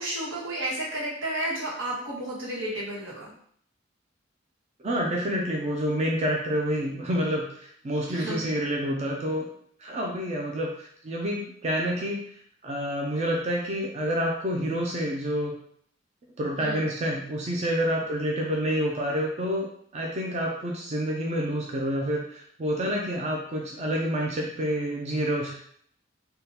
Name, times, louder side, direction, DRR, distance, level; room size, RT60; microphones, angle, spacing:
voice 1, 0.0-3.3 8.1-8.7 16.6-16.8, right 1 dB, 85° right, -5 dB, 1.2 m, -32 dB
voice 2, 4.8-9.5 9.8-12.2 12.6-15.6 16.4-19.7 19.9-25.5, equal, 35° right, -1 dB, 0.4 m, -28 dB
3.6 x 2.2 x 2.8 m, 0.62 s
head